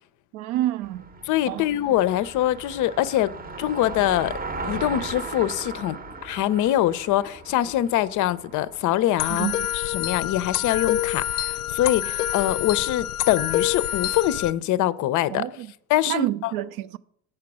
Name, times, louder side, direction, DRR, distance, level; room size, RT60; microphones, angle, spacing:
voice 1, 0.3-1.1 1.5-1.7 9.3-9.7 15.3-15.7 16.1-17.0, right 14 dB, 55° right, 0.5 m, -28 dB
Car passing by, 0.8-13.1, right 3 dB, 20° right, 0.8 m, -38 dB
voice 2, 1.3-3.3 3.6-4.3 4.6-9.5 9.7-15.4 15.9-16.3, left 13 dB, 45° left, 0.5 m, -24 dB
sound 1, 9.2-14.5, left 12 dB, 90° left, 0.6 m, -27 dB
7.5 x 4.7 x 6.0 m
hypercardioid pair, 85°, 44 cm